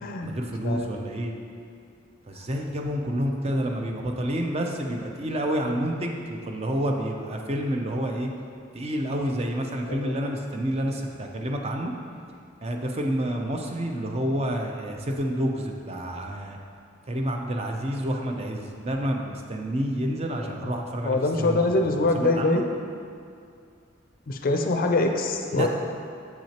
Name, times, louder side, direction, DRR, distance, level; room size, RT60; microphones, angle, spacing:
voice 1, 0.2-1.3 2.3-8.3 8.7-11.9 12.6-16.6 17.1-22.6 25.5-25.7, equal, 30° right, 2 dB, 0.5 m, -29 dB
voice 2, 21.0-22.6 24.3-25.7, left 2 dB, 45° left, 4 dB, 0.4 m, -24 dB
7.4 x 6.0 x 2.9 m, 2.3 s
head